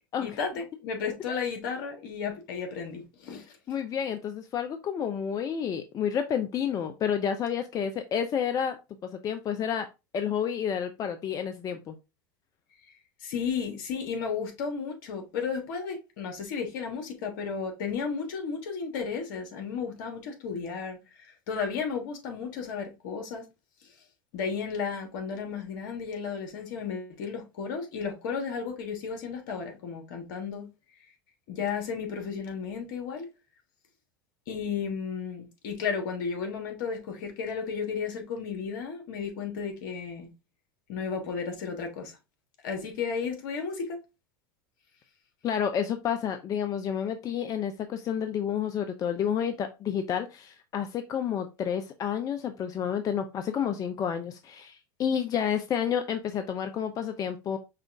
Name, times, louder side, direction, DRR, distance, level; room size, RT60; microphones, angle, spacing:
voice 1, 0.2-3.4 13.2-23.4 24.3-30.7 31.5-33.3 34.5-40.3 40.9-42.2 42.6-44.0, left 6 dB, 65° left, 1.5 m, -33 dB
voice 2, 3.7-8.7 9.2-9.9 10.1-11.9 45.4-57.6, left 8 dB, 30° left, 0.5 m, -30 dB
5.6 x 2.5 x 3.4 m
hypercardioid pair, 100°, 11 cm